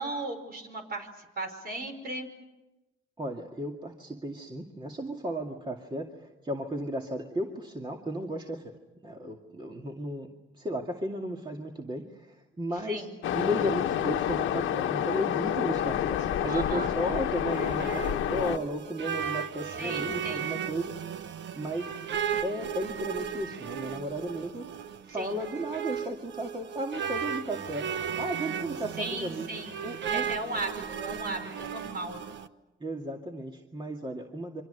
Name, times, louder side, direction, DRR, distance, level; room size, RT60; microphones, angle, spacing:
voice 1, 0.0-2.3 12.9-13.1 16.5-16.9 19.8-20.5 25.1-25.4 29.0-32.2, right 2 dB, 50° right, 5 dB, 5.2 m, -36 dB
voice 2, 3.2-8.8 9.0-10.3 10.5-21.2 21.5-21.9 22.4-24.7 25.1-27.9 28.2-29.5 29.8-30.3 32.8-34.6, right 1 dB, 25° right, 1 dB, 2.3 m, -34 dB
Waves surf, 13.2-18.6, left 10 dB, 80° left, 1.3 m, -28 dB
sound 1, 17.2-32.5, right 8 dB, 65° right, 1.1 m, -35 dB
28.0 x 25.0 x 6.8 m, 1.0 s
cardioid pair, 90°, 20 cm